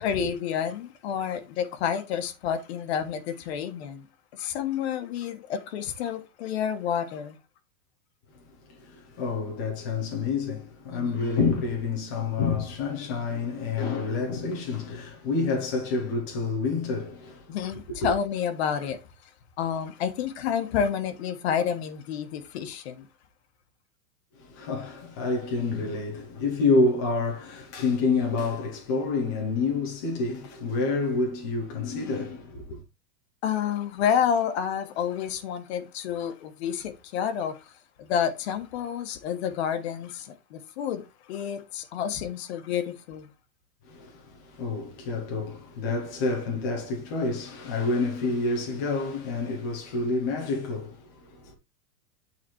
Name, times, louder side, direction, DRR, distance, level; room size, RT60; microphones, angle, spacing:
voice 1, 0.0-4.1 4.3-7.4 10.9-11.2 17.5-19.0 19.6-23.1 33.4-37.7 38.0-43.3, left 8 dB, 40° left, 1.2 m, -29 dB
voice 2, 8.3-17.6 18.0-18.1 24.4-32.8 43.8-51.5, left 3 dB, 15° left, 0.5 m, -28 dB
8.8 x 4.1 x 4.4 m
supercardioid pair, 175°, 50 cm